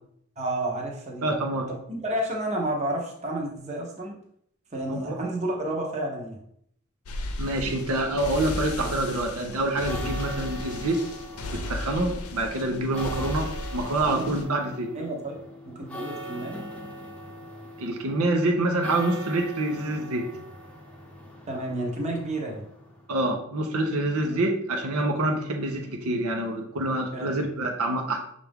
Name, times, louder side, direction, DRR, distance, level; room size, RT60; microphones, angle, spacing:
voice 1, 0.4-1.3 1.7-1.8 2.0-4.2 4.7-6.4 14.0-14.4 14.9-15.4 15.6-16.6 21.5-22.6 24.3-24.4 27.1-27.3, right 1 dB, 30° right, -1 dB, 0.8 m, -30 dB
voice 2, 1.2-1.7 4.9-5.2 7.4-11.0 11.5-14.9 17.8-20.3 23.1-28.2, right 2 dB, 90° right, 2 dB, 0.8 m, -26 dB
sound 1, 7.1-14.4, left 2 dB, 90° left, 0.6 m, -35 dB
sound 2, 9.6-23.2, right 1 dB, 5° left, 0.8 m, -42 dB
5.8 x 2.5 x 3.5 m, 0.69 s
head